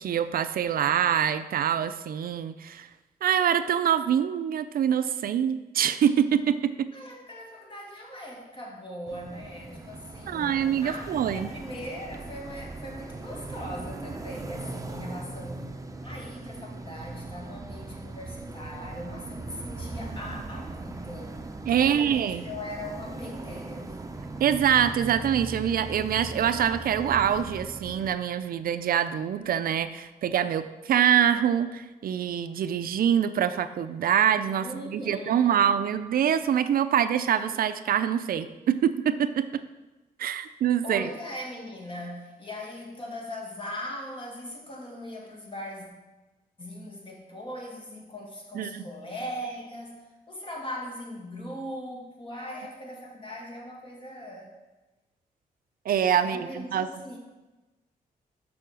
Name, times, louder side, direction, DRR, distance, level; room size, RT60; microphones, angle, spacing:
voice 1, 0.0-2.9 3.2-6.9 10.3-11.5 21.7-22.4 24.4-39.6 40.2-41.1 48.5-48.9 55.9-56.9, right 9 dB, 75° right, 12 dB, 0.5 m, -25 dB
voice 2, 6.9-21.3 21.8-24.0 34.6-35.6 40.8-45.9 46.6-54.5 56.2-57.2, left 1 dB, 35° left, -1 dB, 2.2 m, -40 dB
sound 1, 9.1-28.1, right 2 dB, 20° right, 0.7 m, -39 dB
6.7 x 5.8 x 6.2 m, 1.1 s
cardioid pair, 85°, 15 cm